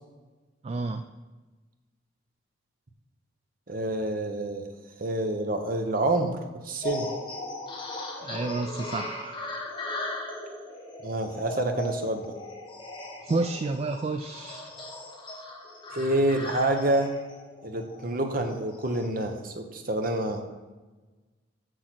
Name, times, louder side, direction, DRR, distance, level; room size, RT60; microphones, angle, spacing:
voice 1, 0.6-1.0 8.2-9.4 13.2-14.6, right 3 dB, 30° right, 7 dB, 0.3 m, -30 dB
voice 2, 3.7-4.7 5.0-6.4 6.6-7.1 11.0-12.3 15.9-17.1 17.6-20.4, right 1 dB, 45° right, 5 dB, 0.9 m, -27 dB
sound 1, 6.8-19.1, left 1 dB, 25° left, 1.5 m, -38 dB
6.5 x 6.3 x 6.0 m, 1.2 s
head